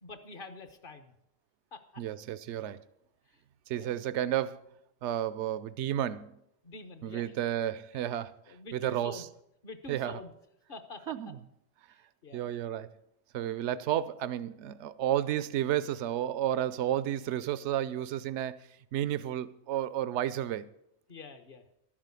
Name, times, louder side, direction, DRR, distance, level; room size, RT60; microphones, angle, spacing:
voice 1, 0.0-1.1 1.7-2.0 3.7-3.9 6.6-7.3 7.9-8.0 8.5-9.2 9.6-10.3 10.7-11.1 12.2-12.4 13.6-13.7 21.1-21.6, left 2 dB, 50° left, 1.3 m, -46 dB
voice 2, 2.0-2.8 3.7-4.6 5.0-6.4 7.0-8.3 8.7-9.3 9.9-10.2 11.1-11.4 12.3-12.9 13.3-20.7, right 11 dB, 75° right, 0.9 m, -32 dB
12.5 x 7.5 x 8.2 m
omnidirectional pair, 1.2 m